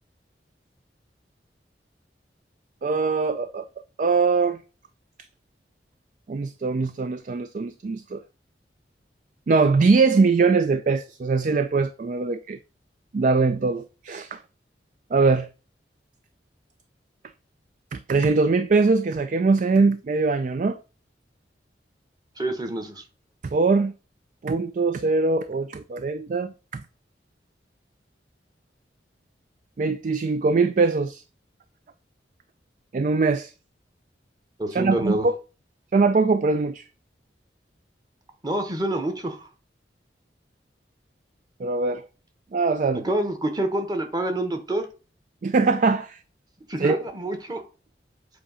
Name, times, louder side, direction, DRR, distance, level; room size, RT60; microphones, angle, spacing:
voice 1, 2.8-3.7 4.0-4.6 6.3-8.2 9.5-12.6 13.1-14.4 15.1-15.5 17.9-20.8 23.5-23.9 24.4-26.8 29.8-31.2 32.9-33.5 34.7-35.3 35.9-36.8 41.6-42.1 42.5-43.0 45.4-46.2 46.8-47.0, right 4 dB, 45° right, 0.3 m, -22 dB
voice 2, 22.4-23.0 34.6-35.3 38.4-39.5 42.9-44.8 46.7-47.6, right 1 dB, 20° right, 1.0 m, -27 dB
7.7 x 2.8 x 5.5 m
head